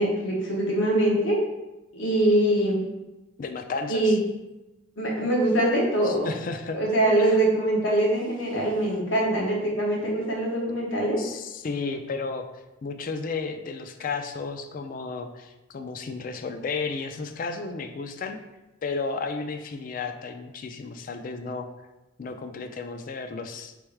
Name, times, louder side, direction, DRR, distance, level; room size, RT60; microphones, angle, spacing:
voice 1, 0.0-1.4 1.9-2.8 3.9-4.2 5.0-6.3 6.7-11.2, right 1 dB, 75° left, -3 dB, 1.2 m, -23 dB
voice 2, 3.4-4.2 6.0-6.8 7.3-7.4 11.2-18.4 18.8-21.7 22.2-23.7, left 4 dB, 45° left, 7 dB, 0.3 m, -33 dB
3.4 x 3.1 x 4.7 m, 1.0 s
head